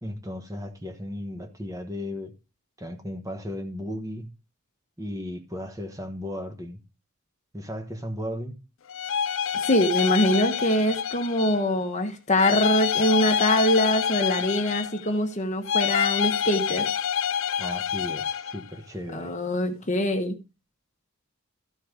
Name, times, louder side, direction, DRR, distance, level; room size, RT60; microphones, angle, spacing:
voice 1, 0.0-2.3 2.8-4.3 5.0-6.8 7.5-8.6 17.6-19.3, left 1 dB, 15° right, 1.2 m, -35 dB
sound 1, 8.9-11.7 12.4-15.2 15.6-18.6, left 8 dB, 60° left, 0.4 m, -27 dB
voice 2, 9.5-16.9 19.1-20.4, left 1 dB, 35° left, 1.3 m, -24 dB
13.5 x 4.7 x 5.0 m
head